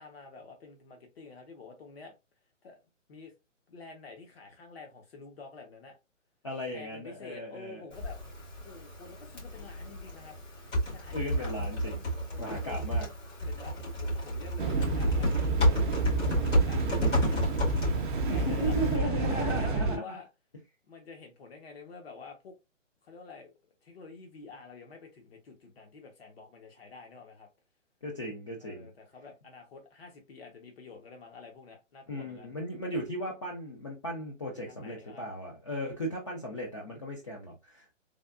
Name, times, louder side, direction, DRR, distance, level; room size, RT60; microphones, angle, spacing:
voice 1, 0.0-2.1 2.6-2.8 3.1-3.3 3.7-6.0 6.7-8.2 8.6-10.4 10.9-11.5 12.3-12.8 13.5-15.3 16.3-17.4 17.8-20.3 20.9-22.6 23.0-23.5 23.8-27.5 28.6-32.5 34.7-35.3, left 4 dB, 50° left, 0.9 m, -49 dB
voice 2, 6.4-7.8 11.1-12.0 12.4-13.1 18.0-20.2 28.0-28.9 32.1-37.9, equal, 25° left, 0.4 m, -36 dB
Typing, 7.9-19.0, right 1 dB, 65° left, 1.9 m, -31 dB
sound 1, 14.6-20.0, right 3 dB, 40° right, 0.5 m, -29 dB
3.4 x 2.4 x 2.3 m
hypercardioid pair, 145°, 38 cm